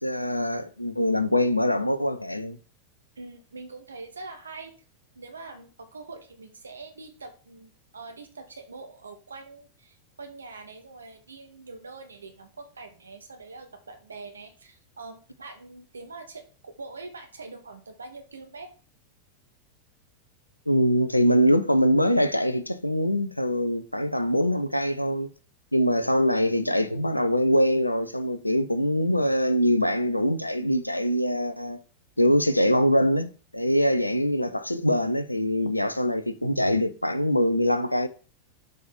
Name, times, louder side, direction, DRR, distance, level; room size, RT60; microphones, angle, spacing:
voice 1, 0.0-2.6 20.7-25.3 25.7-31.8 32.2-38.1, equal, 85° left, 0.5 m, -23 dB
voice 2, 3.1-4.7 5.1-18.7 26.0-26.2 35.6-35.8, right 3 dB, 75° right, 1.1 m, -44 dB
6.5 x 3.5 x 4.3 m
figure-of-eight pair, 90°, 0 cm